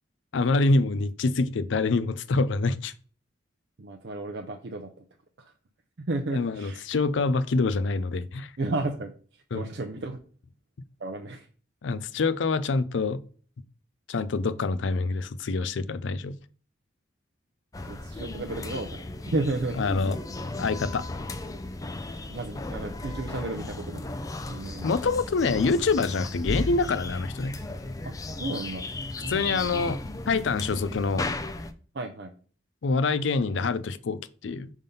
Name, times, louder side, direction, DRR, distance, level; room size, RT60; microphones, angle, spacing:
voice 1, 0.3-2.9 6.3-8.5 9.5-9.7 11.8-13.2 14.1-16.4 19.8-21.0 24.8-27.5 29.3-30.0 30.3-31.3 32.8-34.7, left 3 dB, 85° left, 0.5 m, -26 dB
voice 2, 3.8-4.9 5.4-5.5 6.0-6.9 8.6-9.1 9.5-10.2 11.0-11.5 17.9-19.8 22.3-24.2 24.5-24.9 28.0-28.1 28.4-28.9 29.2-29.6 31.9-32.3, right 2 dB, 60° right, 0.6 m, -33 dB
sound 1, 17.7-31.7, left 2 dB, 20° left, 0.4 m, -35 dB
5.3 x 3.6 x 5.4 m
head